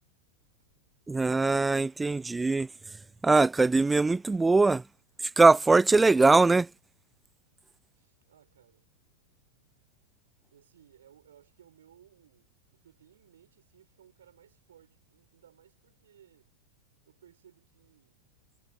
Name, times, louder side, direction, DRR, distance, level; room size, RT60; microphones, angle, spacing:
voice 1, 1.1-2.7 3.2-4.8 5.4-6.7, right 3 dB, 10° right, 0.4 m, -21 dB
voice 2, 7.9-8.9 10.5-16.5 17.0-18.2, right 10 dB, 65° right, 6.8 m, -60 dB
figure-of-eight pair, 90°, 0 cm